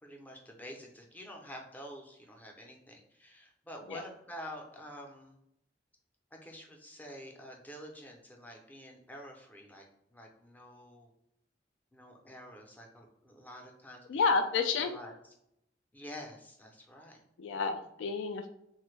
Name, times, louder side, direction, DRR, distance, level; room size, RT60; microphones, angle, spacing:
voice 1, 0.0-5.4 6.4-9.8 10.1-11.1 11.9-14.2 14.8-15.1 15.9-17.2, equal, 10° left, 1 dB, 0.5 m, -48 dB
voice 2, 14.1-14.9 17.4-18.5, left 4 dB, 75° left, 8 dB, 0.3 m, -30 dB
3.2 x 2.1 x 3.1 m, 0.78 s
head